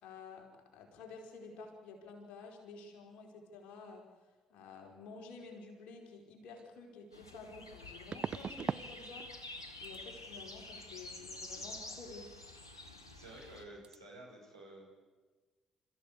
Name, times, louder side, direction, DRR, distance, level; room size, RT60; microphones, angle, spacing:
voice 1, 0.0-4.1 4.5-9.3 9.8-12.3, left 4 dB, 60° left, 2 dB, 4.8 m, -51 dB
sound 1, 6.6-6.7 8.1-8.9 9.2-9.6 9.8-10.0 13.0-13.1 13.3-13.6 13.8-14.0, right 7 dB, 40° right, 0.6 m, -40 dB
sound 2, 7.1-13.6, left 2 dB, 85° left, 1.7 m, -48 dB
voice 2, 13.1-14.9, right 1 dB, 85° right, -4 dB, 6.2 m, -52 dB
29.5 x 14.5 x 8.5 m, 1.3 s
figure-of-eight pair, 45°, 2 cm